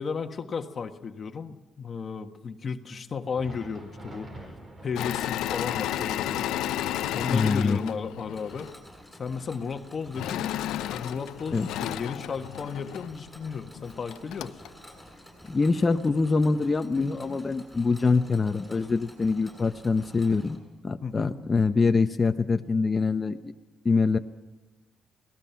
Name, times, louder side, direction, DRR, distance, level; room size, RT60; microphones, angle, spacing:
voice 1, 0.0-4.5 4.8-6.5 7.1-8.7 9.1-10.5 10.9-14.6 21.0-21.4, left 5 dB, 45° left, 6 dB, 1.4 m, -34 dB
Thunder, 3.2-12.6 12.9-13.1 13.8-13.9 14.9-15.0, right 1 dB, 40° right, 4.8 m, -50 dB
Engine / Mechanisms, 5.0-8.7 10.2-13.1 13.8-13.9 14.1-14.7, left 12 dB, 90° left, 0.6 m, -32 dB
voice 2, 7.3-7.8 11.5-11.7 15.5-20.6 20.8-23.5 23.8-24.2, left 4 dB, 30° left, 5 dB, 1.0 m, -24 dB
Mechanisms, 8.3-20.6, equal, 5° right, 7.9 m, -50 dB
25.0 x 18.5 x 5.9 m, 1.1 s
cardioid pair, 90°, 0 cm